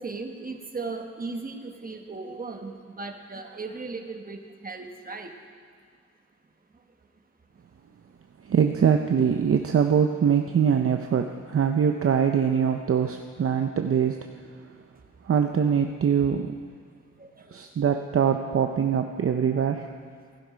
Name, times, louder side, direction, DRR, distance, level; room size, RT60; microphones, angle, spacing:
voice 1, 0.0-5.3 6.7-6.8 17.2-17.6 18.8-18.9 19.5-19.6, right 3 dB, 30° right, 4 dB, 1.2 m, -37 dB
voice 2, 8.4-14.2 15.2-16.5 17.5-19.9, right 7 dB, 50° right, 5 dB, 0.6 m, -23 dB
15.5 x 12.0 x 5.1 m, 2.1 s
wide cardioid pair, 125°, 29 cm